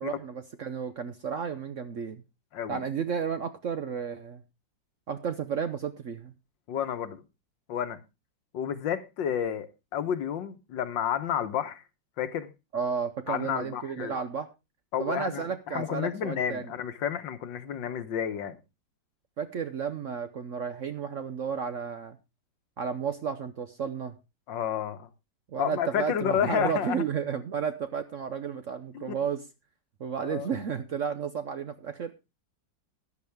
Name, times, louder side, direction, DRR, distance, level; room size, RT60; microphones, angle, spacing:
voice 1, 0.0-2.2 2.7-4.4 5.1-6.3 12.7-14.5 15.0-16.7 19.4-22.2 22.8-24.2 25.5-29.4 30.0-32.1, right 7 dB, 55° right, 0.9 m, -32 dB
voice 2, 6.7-7.2 7.7-8.0 8.5-11.8 12.2-12.5 13.3-14.2 14.9-18.6 24.5-25.1 25.6-27.0 28.9-29.2 30.2-30.5, left 9 dB, 75° left, 1.7 m, -31 dB
13.5 x 10.5 x 3.5 m
omnidirectional pair, 2.0 m